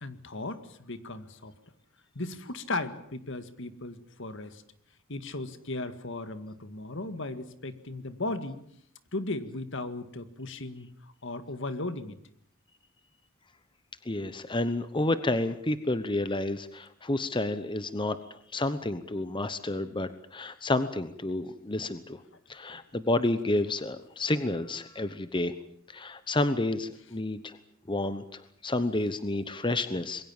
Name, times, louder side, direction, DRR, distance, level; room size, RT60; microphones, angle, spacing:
voice 1, 0.0-1.5 2.2-4.6 5.1-8.6 9.1-10.9 11.2-12.2, left 2 dB, 65° left, 11 dB, 1.9 m, -36 dB
voice 2, 14.0-18.2 18.5-22.2 22.5-25.5 25.9-27.6 27.9-30.2, left 2 dB, 25° left, 12 dB, 1.0 m, -30 dB
26.5 x 22.0 x 7.3 m, 0.66 s
head